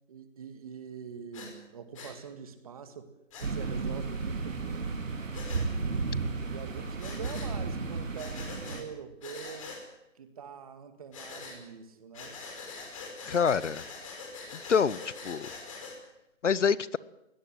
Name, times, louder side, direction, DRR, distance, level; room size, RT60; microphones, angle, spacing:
voice 1, 0.1-3.1 3.4-5.0 6.2-9.7 10.2-12.4 13.3-13.4, right 6 dB, 30° right, 9 dB, 2.0 m, -44 dB
Breathing, 1.3-1.5 2.0-2.1 3.3-3.5 5.3-5.6 7.0-7.5 8.2-8.8 9.2-9.8 11.1-11.6 12.1-16.0, left 4 dB, 25° left, 5.3 m, -43 dB
sound 1, 3.4-8.8, right 4 dB, 75° right, 3.9 m, -33 dB
voice 2, 13.2-13.8 14.5-15.5 16.4-17.0, left 6 dB, 65° left, 20 dB, 1.0 m, -26 dB
22.5 x 18.0 x 7.9 m, 0.89 s
hypercardioid pair, 170°, 39 cm